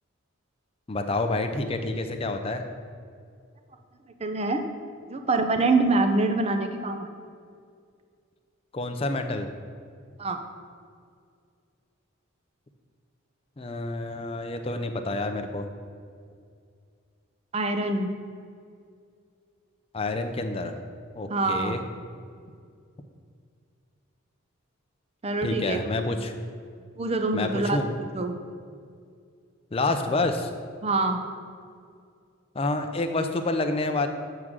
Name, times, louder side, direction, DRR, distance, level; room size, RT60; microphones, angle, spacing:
voice 1, 0.9-2.6 8.7-9.5 13.6-15.7 19.9-20.7 21.1-21.8 25.4-26.3 27.3-27.9 29.7-30.5 32.5-34.1, left 2 dB, 25° left, 6 dB, 0.4 m, -28 dB
voice 2, 4.2-4.6 5.1-7.1 10.2-10.4 17.5-18.1 21.3-21.8 25.2-25.8 27.0-27.8 28.1-28.3 30.8-31.2, right 3 dB, 30° right, 6 dB, 0.5 m, -25 dB
7.9 x 3.6 x 6.1 m, 2.2 s
head